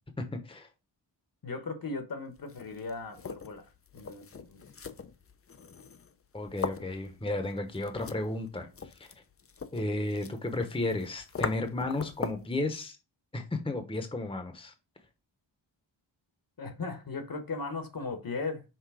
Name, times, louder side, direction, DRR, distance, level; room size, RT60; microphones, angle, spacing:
voice 1, 0.2-0.7 6.3-8.7 9.0-9.1 9.7-13.0 13.3-14.7, left 2 dB, 10° left, 0.9 m, -33 dB
voice 2, 1.4-4.6 16.6-18.6, left 3 dB, 50° left, 1.2 m, -37 dB
sound 1, 2.4-12.6, left 5 dB, 30° left, 0.5 m, -41 dB
6.0 x 3.8 x 4.9 m
wide cardioid pair, 125°, 45 cm